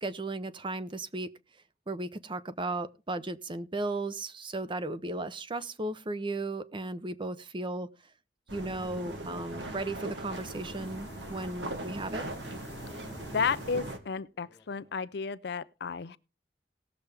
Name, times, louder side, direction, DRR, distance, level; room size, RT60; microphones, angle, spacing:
voice 1, 0.0-1.3 1.9-7.9 8.5-12.3, right 2 dB, 30° right, 0.7 m, -35 dB
sound 1, 8.5-14.0, right 1 dB, 80° right, 1.8 m, -40 dB
sound 2, 10.3-14.9, left 1 dB, 15° left, 1.0 m, -49 dB
voice 2, 13.3-16.2, left 5 dB, 65° left, 0.5 m, -32 dB
19.0 x 6.9 x 3.4 m
head